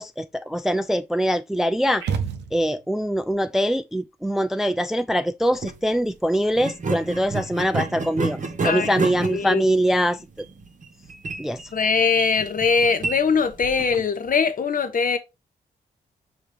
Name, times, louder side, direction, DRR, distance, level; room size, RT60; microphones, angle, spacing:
voice 1, 0.0-2.0 2.5-8.4 8.6-10.5 11.4-11.6, equal, ahead, 0.3 m, -23 dB
sound 1, 2.0-3.0, right 7 dB, 85° right, 0.6 m, -29 dB
sound 2, 5.5-5.8 6.6-14.1, right 3 dB, 45° right, 0.9 m, -31 dB
voice 2, 9.3-9.7 11.7-15.2, left 5 dB, 50° left, 0.8 m, -21 dB
5.0 x 2.9 x 3.3 m
supercardioid pair, 45°, 18 cm